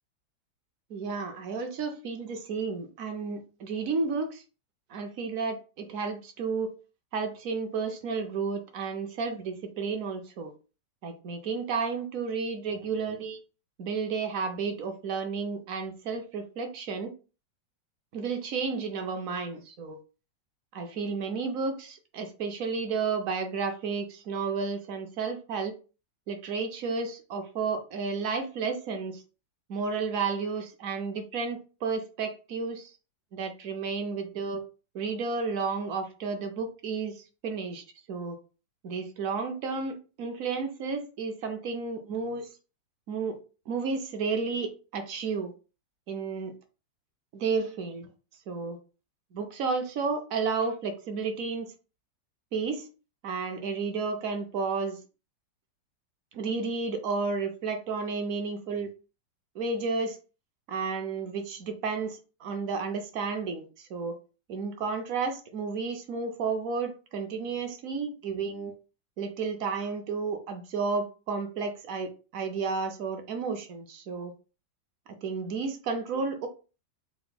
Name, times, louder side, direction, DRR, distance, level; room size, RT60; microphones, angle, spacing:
voice 1, 0.9-4.4 4.9-6.7 7.1-10.5 11.0-13.4 13.8-17.1 18.1-20.0 20.7-25.8 26.3-29.2 29.7-32.9 33.3-34.6 34.9-37.8 38.1-38.4 38.8-42.5 43.1-43.4 43.7-45.5 46.1-46.5 47.3-48.1 48.5-48.8 49.3-51.7 52.5-52.9 53.2-55.0 56.3-58.9 59.5-60.2 60.7-64.2 64.5-68.7 69.2-74.3 75.2-76.5, right 4 dB, 60° right, 0.9 m, -32 dB
4.4 x 2.2 x 4.0 m
omnidirectional pair, 2.0 m